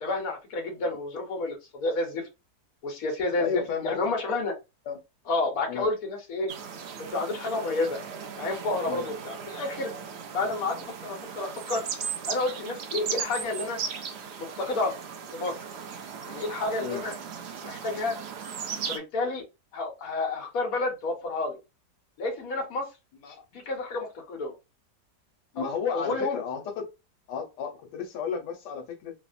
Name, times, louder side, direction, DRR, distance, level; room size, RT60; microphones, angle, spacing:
voice 1, 0.0-2.2 2.8-4.5 5.3-6.5 7.0-8.0 8.4-9.9 10.3-11.8 12.3-13.8 14.4-14.9 15.3-15.6 16.2-17.1 17.6-18.2 18.9-19.4 19.7-21.6 22.2-22.9 23.7-24.5 25.6-25.7 25.9-26.4, left 2 dB, 60° left, 1.4 m, -30 dB
voice 2, 3.4-4.0 4.9-5.0 5.7-5.9 8.8-9.1 16.8-17.0 23.1-23.4 25.5-26.9 27.3-29.1, left 6 dB, 85° left, 1.4 m, -32 dB
sound 1, 6.5-19.0, right 6 dB, 85° right, 0.5 m, -37 dB
3.4 x 2.1 x 2.4 m
omnidirectional pair, 1.8 m